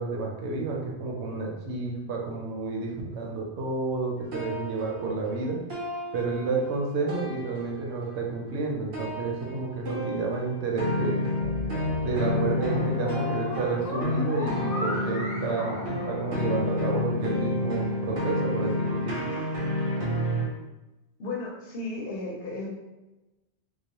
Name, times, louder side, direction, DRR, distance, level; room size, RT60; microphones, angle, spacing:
voice 1, 0.0-5.6 6.1-11.2 12.0-19.2, right 3 dB, 90° right, -1 dB, 0.9 m, -30 dB
sound 1, 4.2-6.8 7.1-8.1 8.9-20.4, left 2 dB, 65° right, 0.9 m, -30 dB
sound 2, 11.4-16.9, left 1 dB, 45° left, 0.7 m, -36 dB
voice 2, 21.2-22.7, left 2 dB, 70° left, -2 dB, 0.8 m, -34 dB
2.3 x 2.1 x 2.8 m, 1.0 s
omnidirectional pair, 1.1 m